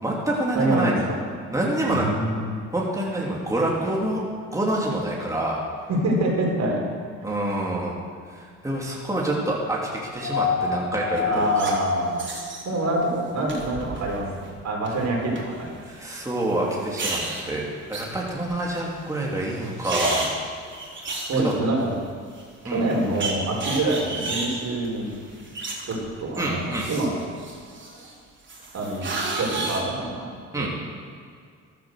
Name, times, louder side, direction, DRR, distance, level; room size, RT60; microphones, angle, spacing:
voice 1, 0.0-0.9 1.5-2.1 2.7-4.2 4.5-5.6 7.2-7.9 8.3-9.8 10.1-11.5 15.9-20.3 21.1-21.5 22.7-22.8 26.4-26.9 30.5-30.7, right 1 dB, 10° right, -3 dB, 3.1 m, -27 dB
voice 2, 0.5-1.2 1.9-2.6 5.9-6.8 7.2-7.4 11.2-12.2 12.6-14.3 14.6-15.8 17.4-17.5 21.2-21.9 22.6-25.1 25.8-27.1 28.7-29.1 29.3-30.3 30.5-30.7, right 2 dB, 55° right, -1 dB, 4.9 m, -26 dB
sound 1, 10.2-13.4 14.8-14.9, left 5 dB, 55° left, 2.9 m, -27 dB
sound 2, 11.2-11.7 12.2-12.6 13.5-14.2 14.4-14.9 15.4-15.5 16.7-17.4 17.9-18.8 19.1-19.2 19.5-22.0 22.4-22.5 22.9-26.1 26.3-28.1 28.5-29.8, right 2 dB, 35° right, 3.9 m, -31 dB
14.0 x 11.5 x 6.6 m, 2.2 s
cardioid pair, 85°, 32 cm